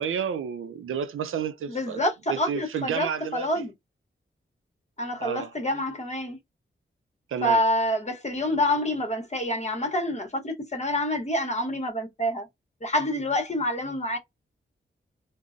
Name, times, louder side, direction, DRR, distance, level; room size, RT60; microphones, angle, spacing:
voice 1, 0.0-2.0 2.3-3.6 5.2-5.5 7.3-7.6, right 7 dB, 80° right, 0.4 m, -31 dB
voice 2, 1.7-3.7 5.0-6.4 7.4-12.5 12.8-14.2, left 1 dB, 35° left, 1.0 m, -27 dB
3.6 x 2.0 x 2.5 m
cardioid pair, 70°, 21 cm